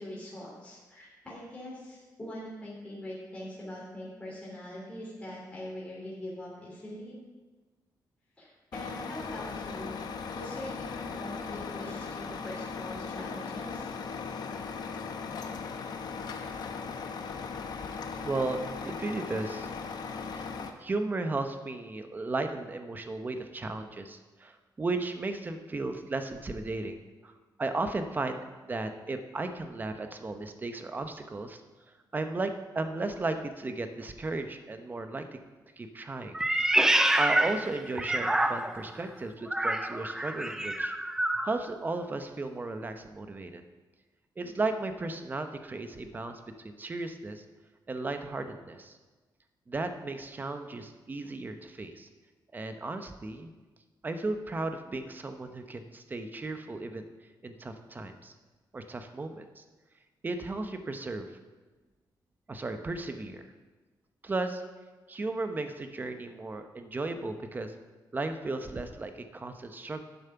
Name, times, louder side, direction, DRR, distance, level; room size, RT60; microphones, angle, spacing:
voice 1, 0.0-7.2 8.4-9.9 10.3-13.9, left 1 dB, 15° left, -7 dB, 2.8 m, -42 dB
Truck, 8.7-20.7, left 5 dB, 60° left, 0.9 m, -38 dB
voice 2, 18.2-19.7 20.1-20.4 20.8-27.3 27.6-31.6 32.1-35.3 35.8-36.4 37.2-40.9 41.4-43.6 44.4-47.4 47.9-49.0 49.7-52.1 52.5-53.5 54.0-57.1 57.4-58.3 58.7-59.6 60.2-61.3 62.5-63.5 64.2-64.6 65.1-67.7 68.1-70.0, right 2 dB, 25° right, 7 dB, 0.8 m, -35 dB
Meow, 36.3-38.9 39.5-41.5, right 1 dB, 5° right, 0.4 m, -27 dB
11.0 x 7.2 x 5.8 m, 1.3 s
wide cardioid pair, 150°, 8 cm